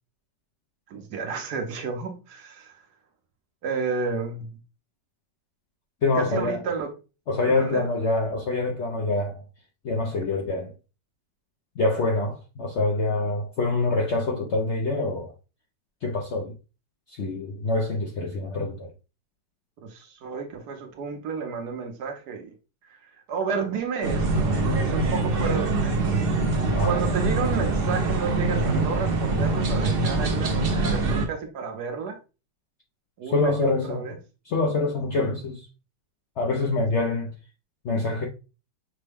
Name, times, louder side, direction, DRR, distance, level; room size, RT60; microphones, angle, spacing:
voice 1, 0.9-2.8 3.6-4.6 6.1-6.9 7.5-7.9 19.8-22.5 22.9-23.0 23.3-26.2 26.8-32.2 33.2-34.1, right 5 dB, 70° right, 1.3 m, -31 dB
voice 2, 6.0-6.6 7.3-9.4 9.8-10.7 11.8-15.3 16.0-16.5 17.1-18.9 26.7-26.9 33.2-34.1 34.4-35.7 36.4-37.3 37.8-38.3, left 3 dB, 65° left, 0.7 m, -25 dB
sound 1, 24.0-31.3, right 3 dB, 45° right, 0.7 m, -24 dB
6.1 x 2.1 x 3.4 m
omnidirectional pair, 1.9 m